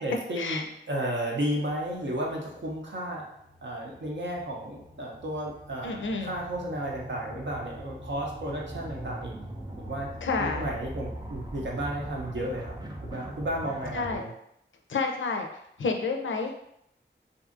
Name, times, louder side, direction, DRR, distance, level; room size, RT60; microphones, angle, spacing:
voice 1, 0.0-3.2 3.6-9.4 9.8-10.1 10.4-12.7 13.0-14.3, right 1 dB, 70° right, -1 dB, 0.7 m, -33 dB
sound 1, 1.8-14.2, right 1 dB, 20° right, 0.4 m, -42 dB
voice 2, 5.8-6.3 10.2-10.7 13.9-14.2 14.9-15.5 15.8-16.5, left 4 dB, 75° left, 3 dB, 0.4 m, -29 dB
2.6 x 2.4 x 2.5 m, 0.76 s
wide cardioid pair, 55°, 20 cm